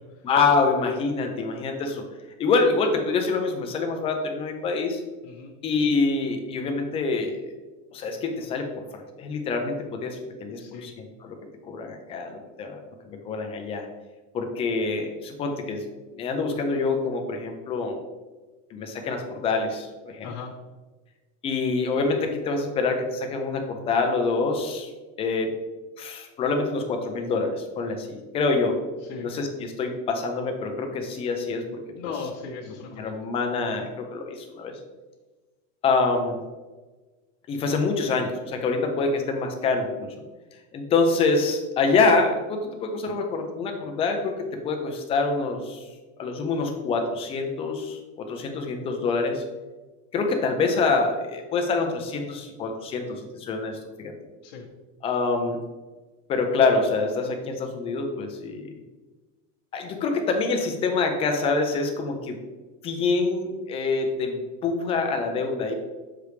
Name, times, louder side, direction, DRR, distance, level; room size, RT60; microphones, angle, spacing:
voice 1, 0.2-2.0 2.4-5.0 5.6-7.5 7.9-11.4 11.6-12.8 13.1-13.9 14.3-15.9 16.1-18.0 18.7-20.3 21.4-24.9 25.2-25.5 26.0-28.8 29.2-31.7 32.9-34.8 35.8-36.4 37.5-40.1 40.7-45.8 46.2-49.4 50.1-54.1 55.0-55.6 56.3-58.7 59.7-62.4 62.8-65.7, left 4 dB, 15° left, 4 dB, 0.3 m, -26 dB
voice 2, 5.2-5.5 10.6-10.9 20.2-20.5 29.1-29.3 31.9-33.1 54.4-54.6, left 5 dB, 85° left, -5 dB, 1.2 m, -37 dB
6.8 x 5.0 x 3.1 m, 1.2 s
supercardioid pair, 170°, 38 cm